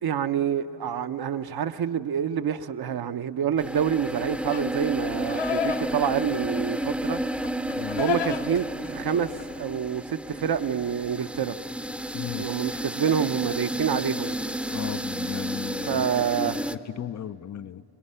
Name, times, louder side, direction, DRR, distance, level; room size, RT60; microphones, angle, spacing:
voice 1, 0.0-7.2 8.0-11.6 12.4-14.4 15.9-16.6, right 8 dB, 60° right, 0.7 m, -27 dB
sound 1, 3.6-16.8, right 1 dB, 5° right, 0.6 m, -32 dB
Livestock farm animals working animals, 4.5-9.6, left 8 dB, 80° left, 0.9 m, -34 dB
voice 2, 12.1-12.5 14.7-17.8, left 10 dB, 45° left, 0.4 m, -36 dB
28.5 x 21.0 x 5.6 m
cardioid pair, 50°, 42 cm